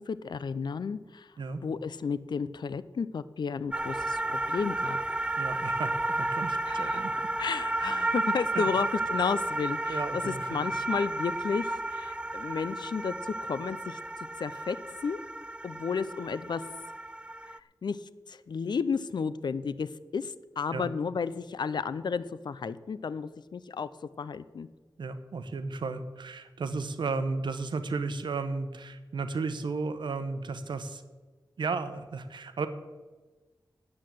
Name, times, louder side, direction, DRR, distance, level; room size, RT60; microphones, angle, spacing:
voice 1, 0.0-1.3 1.6-5.0 6.7-7.1 7.4-14.0 14.4-15.2 15.6-16.6 17.5-23.9 24.2-24.7, left 5 dB, 70° left, 14 dB, 0.5 m, -33 dB
sound 1, 3.7-17.6, right 2 dB, 15° right, 0.3 m, -32 dB
voice 2, 5.4-7.1 7.7-8.0 8.5-8.6 9.9-10.7 20.7-20.9 25.0-31.0 31.6-32.7, right 4 dB, 85° right, 10 dB, 0.9 m, -34 dB
9.6 x 8.6 x 7.7 m, 1.3 s
wide cardioid pair, 100°, 8 cm